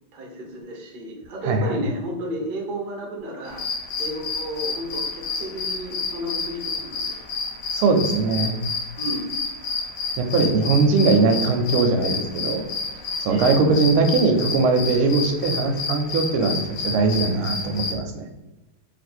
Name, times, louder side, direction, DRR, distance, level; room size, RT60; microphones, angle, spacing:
voice 1, 0.1-3.7 4.0-7.3 7.6-7.8 9.0-9.3 13.3-13.5, right 1 dB, 70° right, -1 dB, 0.4 m, -32 dB
voice 2, 1.4-1.8 7.7-8.5 10.2-12.6 13.2-18.3, right 3 dB, 90° right, 5 dB, 1.6 m, -20 dB
sound 1, 3.5-17.9, left 4 dB, 65° left, 1.2 m, -30 dB
3.3 x 2.8 x 4.2 m, 1.0 s
omnidirectional pair, 2.4 m